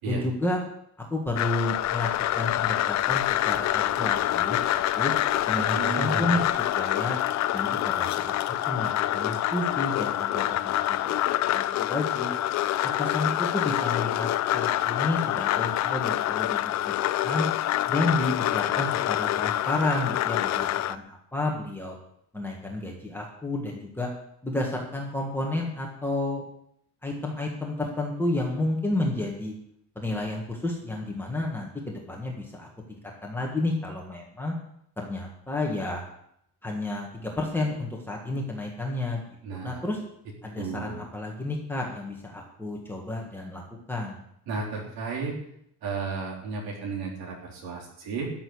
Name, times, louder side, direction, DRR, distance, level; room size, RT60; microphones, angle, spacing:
voice 1, 0.1-0.6 1.1-2.1 2.3-4.6 4.9-5.1 5.5-6.4 6.7-7.2 7.5-8.3 8.7-11.2 11.5-12.3 12.8-17.5 17.9-21.9 22.3-24.1 24.4-26.4 27.0-29.5 29.9-34.5 35.0-36.0 36.6-39.2 39.6-40.0 40.4-43.6 43.9-44.2, left 2 dB, 5° left, -2 dB, 1.7 m, -31 dB
sound 1, 1.4-20.9, left 13 dB, 45° left, 0.6 m, -26 dB
sound 2, 1.6-6.7, equal, 15° right, 3.9 m, -50 dB
voice 2, 5.6-6.3 39.4-39.8 40.6-41.0 44.5-45.4 45.8-48.3, right 4 dB, 70° right, -2 dB, 3.5 m, -33 dB
13.5 x 6.8 x 9.6 m, 0.72 s
cardioid pair, 180°, 38 cm